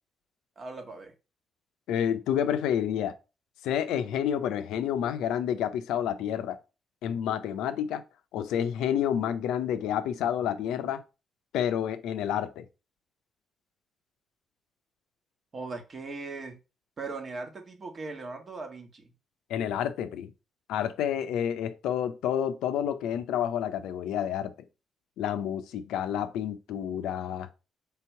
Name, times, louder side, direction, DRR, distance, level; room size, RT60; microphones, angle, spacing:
voice 1, 0.6-1.1 15.5-16.6 17.0-19.1, right 3 dB, 45° right, 1.3 m, -39 dB
voice 2, 1.9-3.1 3.6-6.6 7.0-8.0 8.3-11.0 11.5-12.7 19.5-20.3 20.7-24.5 25.2-27.5, left 9 dB, 80° left, 0.4 m, -29 dB
3.4 x 2.9 x 4.4 m
supercardioid pair, 50°, 0 cm